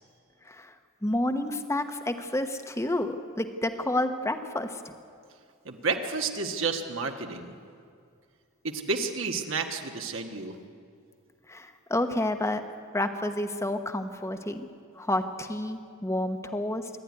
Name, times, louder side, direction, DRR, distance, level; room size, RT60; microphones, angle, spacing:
voice 1, 1.0-4.9 11.5-12.6 12.9-14.7 15.0-16.9, left 1 dB, 15° left, 8 dB, 1.0 m, -30 dB
voice 2, 5.6-7.5 8.6-10.6, right 4 dB, 65° right, 3 dB, 1.5 m, -31 dB
27.0 x 11.0 x 9.8 m, 2.3 s
head